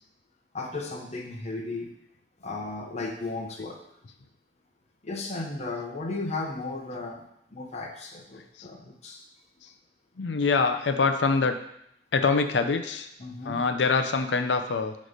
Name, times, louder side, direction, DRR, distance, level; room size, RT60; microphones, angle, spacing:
voice 1, 0.5-1.9 2.4-3.8 5.0-7.2 7.5-9.2 13.2-13.6, left 3 dB, 40° left, 0 dB, 0.9 m, -35 dB
voice 2, 10.2-11.6 12.1-13.1 13.4-15.0, left 4 dB, 75° left, 8 dB, 0.6 m, -24 dB
8.2 x 3.2 x 5.1 m, 0.75 s
head